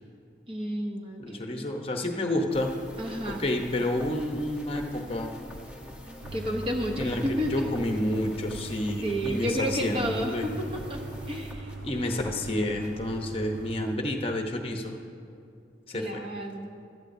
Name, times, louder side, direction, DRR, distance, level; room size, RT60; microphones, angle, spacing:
voice 1, 0.5-1.7 3.0-3.4 6.3-7.7 9.0-11.0 11.3-11.7 15.9-16.7, equal, 30° right, 2 dB, 0.8 m, -31 dB
voice 2, 1.2-2.7 3.4-5.3 7.0-10.5 11.8-15.0 15.9-16.2, left 1 dB, 30° left, 3 dB, 0.8 m, -29 dB
sound 1, 2.5-13.0, equal, 10° right, 1.0 m, -44 dB
sound 2, 6.2-14.0, right 3 dB, 70° right, 0.9 m, -41 dB
15.0 x 12.5 x 2.7 m, 2.5 s
head